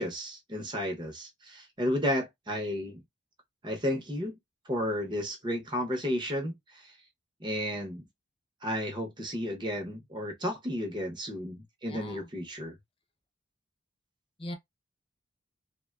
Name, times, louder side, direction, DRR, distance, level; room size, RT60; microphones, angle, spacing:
voice 1, 0.0-3.0 3.6-4.4 4.7-6.9 7.4-8.0 8.6-12.7, equal, 25° right, 0.7 m, -33 dB
voice 2, 11.9-12.3 14.4-14.5, left 1 dB, 30° left, 0.6 m, -40 dB
3.4 x 2.2 x 2.2 m
head